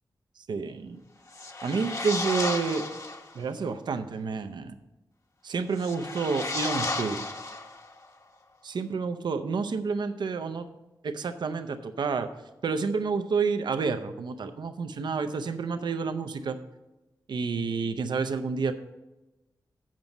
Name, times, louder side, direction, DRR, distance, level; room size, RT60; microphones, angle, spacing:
voice 1, 0.5-1.0 1.6-2.8 3.3-4.7 5.4-7.2 8.6-10.7 11.0-12.3 12.6-16.6 17.3-18.7, right 5 dB, 80° right, 9 dB, 0.6 m, -29 dB
sound 1, 1.3-3.3 5.7-8.1, left 2 dB, 45° left, 1.0 m, -33 dB
7.5 x 5.3 x 7.1 m, 1.0 s
wide cardioid pair, 75°, 7 cm